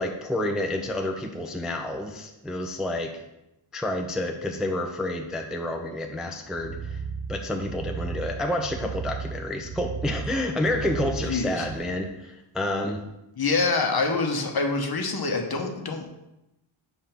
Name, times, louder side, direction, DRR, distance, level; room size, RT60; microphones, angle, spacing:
voice 1, 0.0-3.1 3.7-7.0 7.3-13.0, left 1 dB, ahead, 3 dB, 0.4 m, -29 dB
sound 1, 6.5-11.8, right 5 dB, 50° right, 0.6 m, -35 dB
voice 2, 11.2-11.7 13.4-16.1, left 3 dB, 45° left, 3 dB, 1.0 m, -26 dB
7.3 x 3.4 x 5.7 m, 0.91 s
wide cardioid pair, 130°, 50 cm